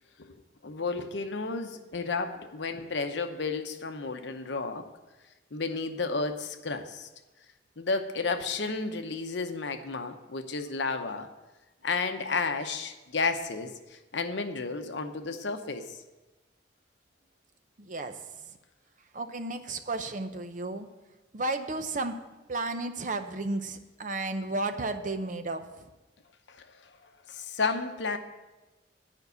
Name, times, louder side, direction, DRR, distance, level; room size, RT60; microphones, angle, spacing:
voice 1, 0.6-4.9 5.5-7.1 7.8-11.3 11.8-16.0 26.5-26.9 27.3-28.2, left 4 dB, 65° left, 7 dB, 0.8 m, -32 dB
voice 2, 17.8-18.1 19.1-20.9 21.3-22.2 22.5-25.8, right 2 dB, 40° right, 8 dB, 0.6 m, -33 dB
9.6 x 5.3 x 8.1 m, 1.1 s
head